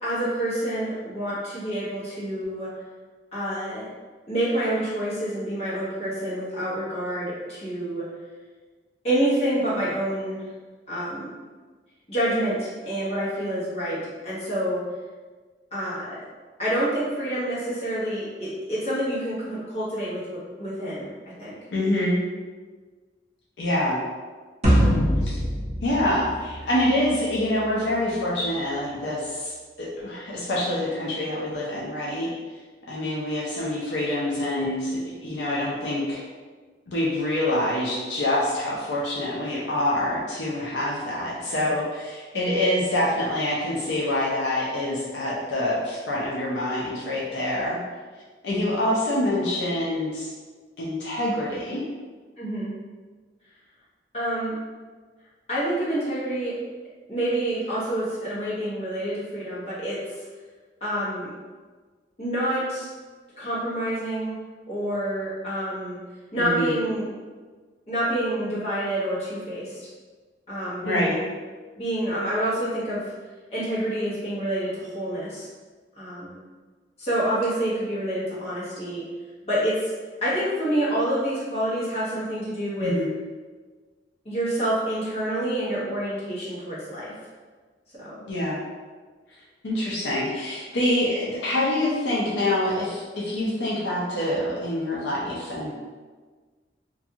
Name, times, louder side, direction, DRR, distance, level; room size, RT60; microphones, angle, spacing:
voice 1, 0.0-2.7 3.3-3.8 4.3-8.1 9.0-10.4 10.9-11.3 12.1-14.8 15.7-16.1 16.6-21.1 21.4-21.6 52.4-52.7 54.1-54.5 55.5-56.5 57.1-60.2 60.8-61.3 62.2-62.9 63.4-64.4 64.7-66.0 66.3-67.1 67.9-69.9 70.5-71.2 71.8-73.1 73.5-75.5 75.9-76.3 77.0-79.0 79.4-79.9 80.2-82.9 84.2-87.1 88.0-88.1, right 1 dB, 35° left, -10 dB, 1.0 m, -27 dB
voice 2, 21.7-22.2 23.6-24.0 25.2-25.4 25.8-32.3 32.9-36.2 36.9-47.8 48.4-50.3 50.8-51.8 66.4-66.7 70.8-71.1 82.8-83.1 88.3-88.6 89.6-95.7, left 1 dB, 80° left, -6 dB, 0.5 m, -26 dB
sound 1, 24.6-27.1, equal, 40° right, 0.7 m, -22 dB
2.6 x 2.3 x 2.7 m, 1.4 s
head